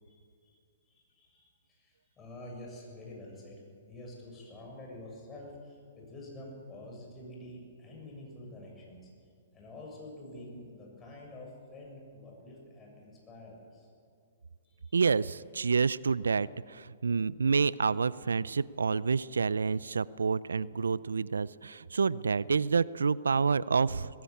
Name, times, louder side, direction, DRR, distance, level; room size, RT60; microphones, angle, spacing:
voice 1, 0.0-0.6 0.9-9.1 9.5-13.9 14.6-15.0, left 1 dB, 20° left, -1 dB, 7.2 m, -48 dB
voice 2, 14.9-24.2, right 5 dB, 85° right, 20 dB, 0.4 m, -28 dB
20.0 x 16.0 x 8.6 m, 2.2 s
hypercardioid pair, 130°, 0 cm